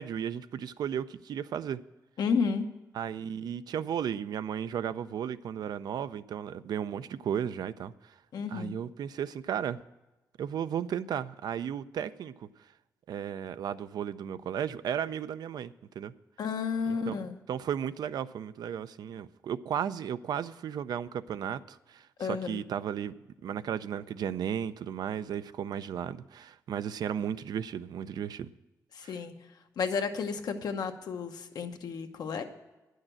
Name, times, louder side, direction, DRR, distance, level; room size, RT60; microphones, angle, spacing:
voice 1, 0.0-1.8 2.9-8.1 8.5-9.8 10.4-12.5 13.1-16.1 16.9-17.1 17.5-23.1 23.4-28.5 29.0-29.2, right 8 dB, 80° right, 14 dB, 0.4 m, -34 dB
voice 2, 2.2-2.7 8.3-8.8 16.4-17.4 22.2-22.6 28.9-29.3 29.8-32.4, left 5 dB, 80° left, 6 dB, 0.9 m, -32 dB
9.8 x 6.5 x 8.8 m, 1.1 s
cardioid pair, 90°, 7 cm